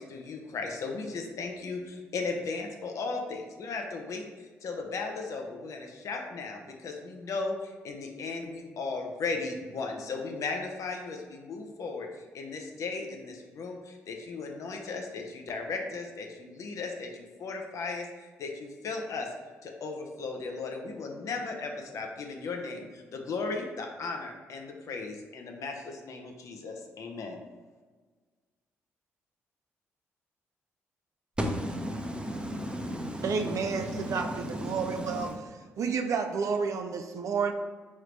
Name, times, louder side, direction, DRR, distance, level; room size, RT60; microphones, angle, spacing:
voice 1, 0.0-4.3 4.6-19.3 19.6-27.4, left 4 dB, 60° left, 2 dB, 0.6 m, -36 dB
voice 2, 31.4-35.3, equal, 15° right, 2 dB, 0.8 m, -34 dB
voice 3, 33.2-35.3 35.8-37.5, right 5 dB, 60° right, 6 dB, 0.4 m, -30 dB
3.7 x 3.1 x 3.2 m, 1.4 s
hypercardioid pair, 50°, 6 cm